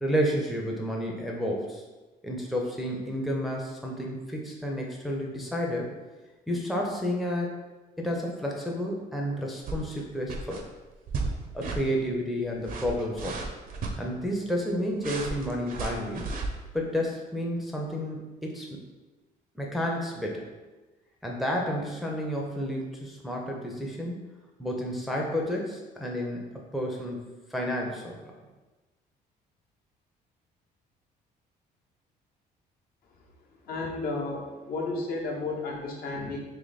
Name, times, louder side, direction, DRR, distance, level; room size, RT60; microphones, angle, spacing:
voice 1, 0.0-1.8 2.2-5.9 6.5-7.6 8.0-10.6 11.5-13.5 14.0-16.3 16.7-18.8 19.5-20.5 21.2-24.3 24.6-26.5 26.7-28.3, equal, ahead, -2 dB, 0.5 m, -31 dB
sound 1, 9.6-10.0 10.3-10.6 11.1-11.3 11.6-11.8 12.5-13.9 15.0-16.5, right 3 dB, 55° right, 0.6 m, -33 dB
voice 2, 33.7-36.4, left 3 dB, 60° left, -1 dB, 0.9 m, -32 dB
3.3 x 3.0 x 4.0 m, 1.2 s
cardioid pair, 110°, 17 cm